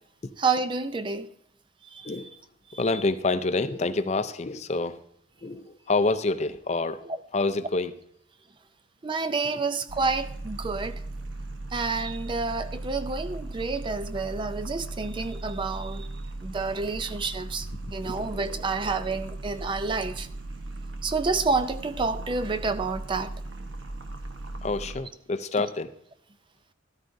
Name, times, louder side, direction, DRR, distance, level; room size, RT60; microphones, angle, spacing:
voice 1, 0.4-1.3 1.9-2.1 2.7-2.8 9.0-11.0 11.7-16.1 16.4-20.3 21.0-23.3 25.6-25.7, right 4 dB, 25° right, 0.4 m, -29 dB
voice 2, 2.7-5.0 5.4-7.0 7.3-7.9 18.0-18.6 24.6-25.9, left 3 dB, 35° left, 0.5 m, -27 dB
sound 1, 9.9-25.0, right 2 dB, 70° right, 1.0 m, -37 dB
13.0 x 12.5 x 2.6 m
head